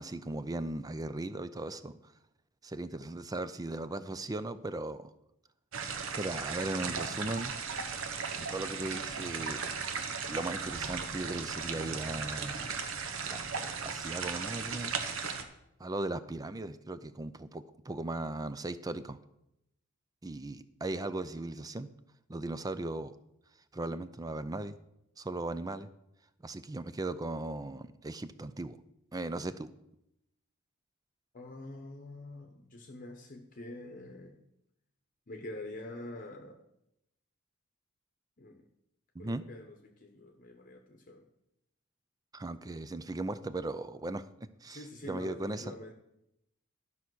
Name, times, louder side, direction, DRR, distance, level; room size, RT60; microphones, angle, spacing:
voice 1, 0.0-2.0 2.6-5.1 6.2-7.6 8.3-9.6 10.3-12.8 13.3-13.4 13.8-15.0 15.8-19.2 20.2-21.9 22.3-23.1 23.7-24.8 25.2-25.9 26.4-28.8 29.1-29.7 39.1-39.4 42.3-44.3 44.6-45.7, right 2 dB, 15° right, 13 dB, 0.4 m, -37 dB
sound 1, 5.7-15.4, right 5 dB, 65° right, 1.0 m, -36 dB
voice 2, 31.3-34.4 35.3-36.6 38.4-38.6 39.2-41.3 44.7-45.9, left 2 dB, 40° left, 4 dB, 0.9 m, -46 dB
12.0 x 5.7 x 6.2 m, 0.83 s
head